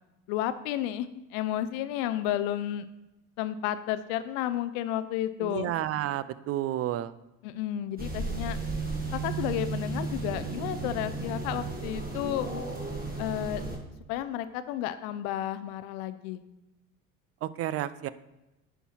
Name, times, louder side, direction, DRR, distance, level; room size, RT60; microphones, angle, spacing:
voice 1, 0.3-2.9 3.4-5.7 7.4-8.6 9.2-12.5 13.2-13.6 14.1-16.4, left 12 dB, 65° left, 13 dB, 0.6 m, -32 dB
voice 2, 5.4-7.1 17.4-18.1, right 13 dB, 35° right, 16 dB, 0.4 m, -31 dB
sound 1, 8.0-13.8, right 3 dB, 20° right, 1.7 m, -34 dB
10.0 x 4.6 x 4.3 m, 0.97 s
hypercardioid pair, 65°, 40 cm